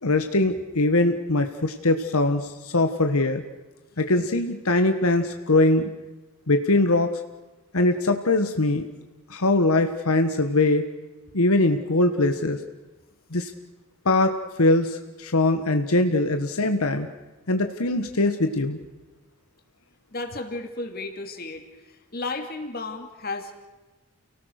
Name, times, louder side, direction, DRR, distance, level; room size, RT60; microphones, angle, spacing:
voice 1, 0.0-3.4 4.0-5.9 6.5-7.1 7.7-8.9 9.3-10.8 11.3-12.6 13.3-13.5 14.0-17.1 17.5-18.8, left 2 dB, 80° left, 7 dB, 1.4 m, -22 dB
voice 2, 20.1-21.7 22.1-23.6, left 3 dB, 40° left, 6 dB, 2.7 m, -33 dB
30.0 x 18.5 x 6.5 m, 1.1 s
head